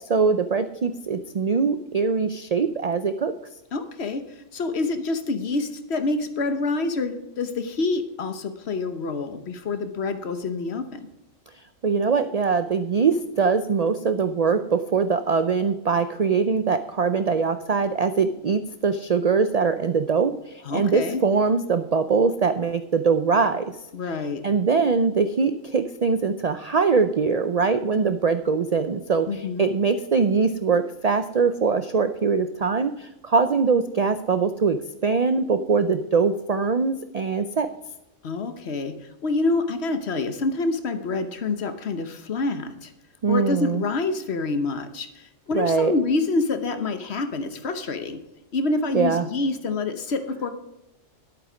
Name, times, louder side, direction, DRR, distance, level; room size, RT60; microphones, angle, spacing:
voice 1, 0.1-3.3 11.8-23.7 24.4-37.7 43.2-43.8 45.5-45.9 48.9-49.2, right 5 dB, 75° right, 10 dB, 0.3 m, -22 dB
voice 2, 3.7-4.2 4.5-11.0 20.6-21.2 23.9-24.4 29.3-29.7 38.2-38.9 39.2-42.9 43.3-45.1 45.5-48.2 48.5-50.5, left 3 dB, 55° left, 9 dB, 1.2 m, -27 dB
11.5 x 8.6 x 5.0 m, 0.92 s
omnidirectional pair, 1.4 m